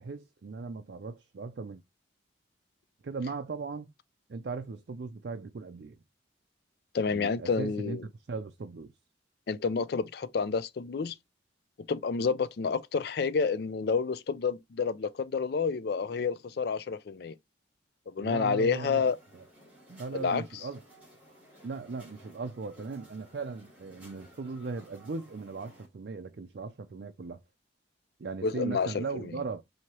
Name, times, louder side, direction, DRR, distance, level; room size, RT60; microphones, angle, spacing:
voice 1, 0.0-1.8 3.0-3.9 4.3-6.0 7.0-8.0 8.3-8.9 18.2-19.1 19.3-19.4 19.9-20.8 21.6-27.4 28.2-29.6, right 4 dB, 60° right, 0.4 m, -38 dB
voice 2, 6.9-8.0 9.5-11.1 11.9-17.4 18.1-19.2 20.1-20.4 28.4-29.0, left 5 dB, 55° left, 0.4 m, -29 dB
sound 1, 19.0-25.9, equal, 10° right, 2.3 m, -56 dB
4.5 x 2.8 x 2.9 m
head